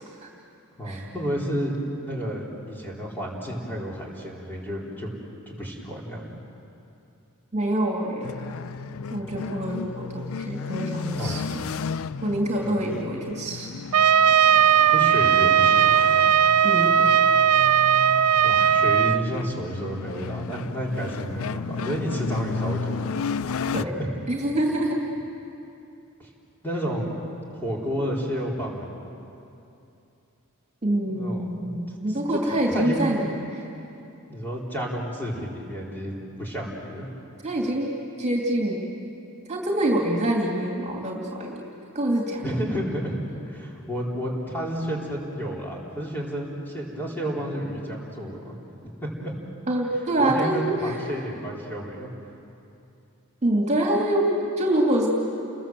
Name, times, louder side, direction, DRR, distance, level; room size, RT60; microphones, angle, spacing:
voice 1, 0.8-1.7 2.0-5.1 5.5-6.3 11.1-11.4 14.9-15.9 18.4-23.0 23.7-24.1 26.2-26.3 26.6-27.1 27.5-28.9 31.1-31.7 32.1-32.2 32.4-33.2 34.3-37.1 42.4-43.2 43.5-48.6 49.0-49.3 50.2-52.1, equal, 10° left, -4 dB, 4.2 m, -31 dB
voice 2, 7.5-8.3 9.1-11.4 12.2-13.8 14.6-14.8 16.6-17.1 23.7-23.9 24.3-25.0 30.8-33.6 37.4-37.9 38.2-38.8 39.5-41.7 41.9-42.4 49.7-50.9 53.4-55.1, right 1 dB, 30° right, -1 dB, 2.8 m, -25 dB
sound 1, 8.2-23.8, left 5 dB, 65° left, 0.5 m, -33 dB
Trumpet, 13.9-19.2, right 8 dB, 90° right, 0.5 m, -18 dB
30.0 x 21.5 x 7.7 m, 2.8 s
head